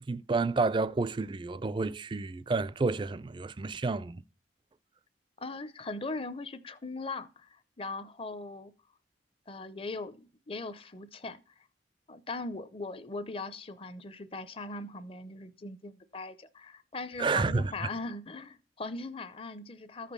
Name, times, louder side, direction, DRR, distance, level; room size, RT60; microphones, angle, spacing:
voice 1, 0.1-4.2 17.2-17.7, right 3 dB, 25° right, 0.4 m, -30 dB
voice 2, 5.4-8.7 9.5-11.4 12.1-20.1, left 3 dB, 30° left, 0.6 m, -40 dB
13.5 x 5.0 x 5.4 m
head